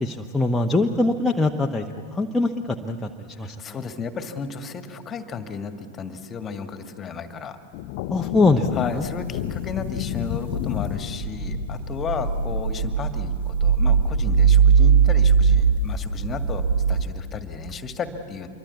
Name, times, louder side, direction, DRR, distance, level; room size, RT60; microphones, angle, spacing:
voice 1, 0.0-1.8 2.1-2.5 2.8-3.1 3.4-3.8 8.1-9.0, left 2 dB, 5° left, 1 dB, 1.0 m, -22 dB
voice 2, 3.4-7.6 8.7-18.5, left 5 dB, 20° left, 9 dB, 1.8 m, -33 dB
sound 1, 7.7-13.4, left 13 dB, 45° left, 0.7 m, -32 dB
sound 2, 8.7-17.1, right 6 dB, 55° right, 1.7 m, -21 dB
26.5 x 23.5 x 8.3 m, 2.5 s
figure-of-eight pair, 95°, 0 cm